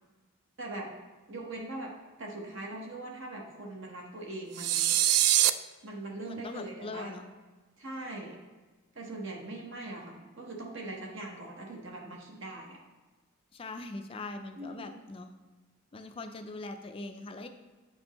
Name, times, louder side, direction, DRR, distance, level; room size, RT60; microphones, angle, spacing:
voice 1, 0.6-0.9 1.3-1.9 2.2-4.9 5.8-7.1 7.8-8.3 8.9-12.8 14.5-15.0, right 2 dB, 55° right, -1 dB, 1.0 m, -41 dB
sound 1, 4.5-5.5, right 13 dB, 85° right, 0.3 m, -23 dB
voice 2, 6.3-7.3 13.5-15.3 15.9-17.5, left 2 dB, 25° left, 7 dB, 0.3 m, -41 dB
8.8 x 5.2 x 3.0 m, 1.3 s
head